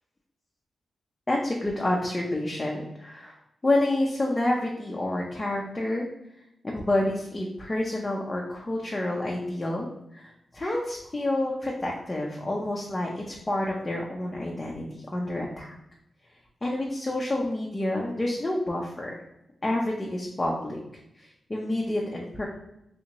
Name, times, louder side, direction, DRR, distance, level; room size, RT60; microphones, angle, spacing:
voice 1, 1.3-3.3 3.6-6.0 6.6-9.9 10.1-15.8 16.6-19.1 19.6-20.8 21.2-22.4, left 1 dB, 20° left, -2 dB, 0.5 m, -28 dB
3.4 x 2.7 x 2.9 m, 0.83 s
wide cardioid pair, 120°, 0 cm